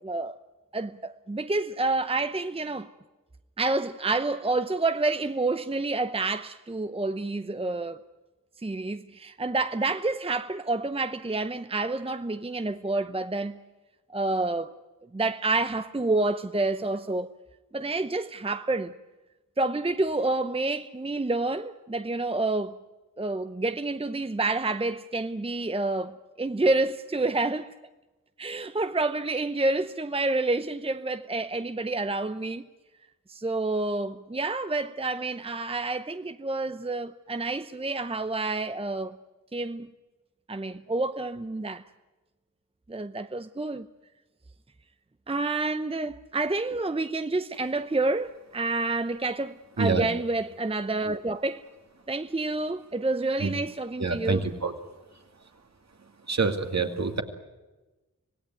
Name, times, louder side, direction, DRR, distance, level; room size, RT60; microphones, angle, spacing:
voice 1, 0.0-0.4 0.7-2.9 3.6-8.0 8.6-13.6 14.1-14.7 15.1-17.3 17.7-18.9 19.6-22.8 23.2-27.7 28.4-32.6 33.3-39.2 39.5-39.9 40.5-41.8 42.9-43.9 45.3-51.6 52.1-54.5, right 2 dB, 15° right, 0.7 m, -28 dB
voice 2, 54.0-54.7 56.3-57.2, right 4 dB, 55° right, 2.4 m, -26 dB
26.0 x 17.5 x 9.2 m
wide cardioid pair, 60°, 32 cm